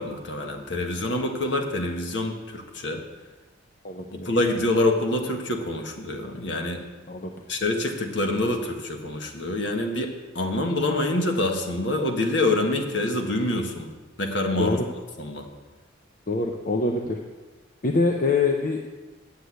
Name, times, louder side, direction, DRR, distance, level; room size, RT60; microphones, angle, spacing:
voice 1, 0.0-3.0 4.2-6.8 7.5-13.9 14.2-14.8 15.2-15.5, left 2 dB, 60° left, 4 dB, 1.5 m, -26 dB
voice 2, 3.8-4.3 7.1-7.3 14.6-14.9 16.3-17.2 17.8-18.8, left 3 dB, 40° left, 3 dB, 0.7 m, -24 dB
8.2 x 8.0 x 8.3 m, 1.3 s
head